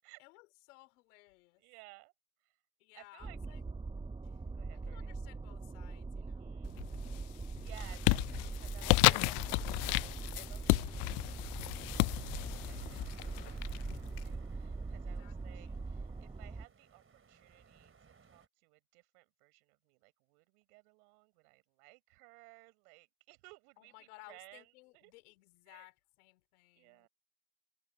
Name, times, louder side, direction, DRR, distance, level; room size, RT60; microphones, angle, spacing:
voice 1, 0.2-1.6 2.8-3.6 4.2-4.4 4.7-6.6 15.0-15.8 23.8-27.1, left 22 dB, 85° left, 4.4 m, -59 dB
voice 2, 1.6-2.1 2.4-2.6 2.9-3.4 4.5-5.1 6.2-6.8 7.5-11.6 12.1-25.1 25.7-25.9 26.7-27.1, right 28 dB, 80° right, 7.6 m, -59 dB
sound 1, 3.2-16.7, right 3 dB, 10° right, 0.8 m, -42 dB
sound 2, 6.7-7.2 7.6-14.2, left 29 dB, 65° left, 0.5 m, -32 dB
sound 3, 9.8-18.5, right 5 dB, 30° right, 4.3 m, -63 dB
supercardioid pair, 80°, 44 cm